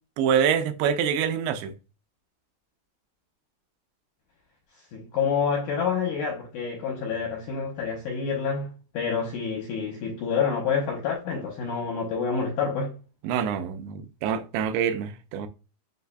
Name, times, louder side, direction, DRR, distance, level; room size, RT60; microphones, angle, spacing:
voice 1, 0.2-1.7 13.2-15.5, right 8 dB, 90° right, 2.6 m, -25 dB
voice 2, 4.9-12.9, left 6 dB, 75° left, 1.8 m, -28 dB
7.8 x 2.7 x 2.2 m
omnidirectional pair, 4.5 m